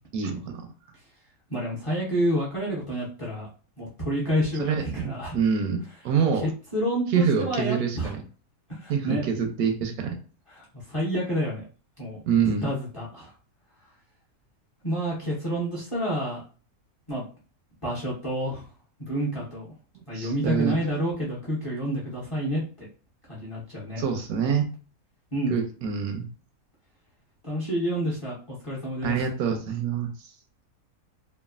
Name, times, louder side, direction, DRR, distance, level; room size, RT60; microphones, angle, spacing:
voice 1, 0.1-0.6 4.6-6.5 7.1-8.2 8.9-10.2 12.3-12.7 19.9-20.8 24.0-24.7 25.5-26.3 29.0-30.1, right 6 dB, 80° right, 5 dB, 1.1 m, -26 dB
voice 2, 1.5-3.5 3.8-5.4 6.3-8.1 8.7-9.3 10.5-11.6 12.0-13.3 14.8-16.4 17.1-17.2 17.8-18.6 19.1-19.7 20.1-22.9 23.3-24.0 25.3-25.5 27.4-29.2, equal, 30° left, -5 dB, 0.7 m, -29 dB
3.1 x 2.3 x 2.4 m, 0.37 s
omnidirectional pair, 1.6 m